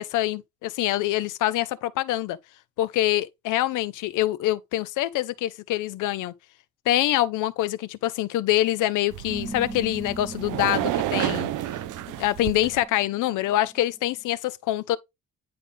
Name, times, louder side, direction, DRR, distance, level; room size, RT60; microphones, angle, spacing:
voice 1, 0.0-2.4 2.8-6.3 6.9-11.5 12.2-15.0, left 14 dB, 90° left, 0.7 m, -25 dB
sound 1, 9.1-12.8, right 14 dB, 90° right, 0.6 m, -30 dB
sound 2, 9.3-14.2, right 1 dB, 5° right, 0.7 m, -40 dB
9.9 x 3.9 x 3.4 m
cardioid pair, 90°, 30 cm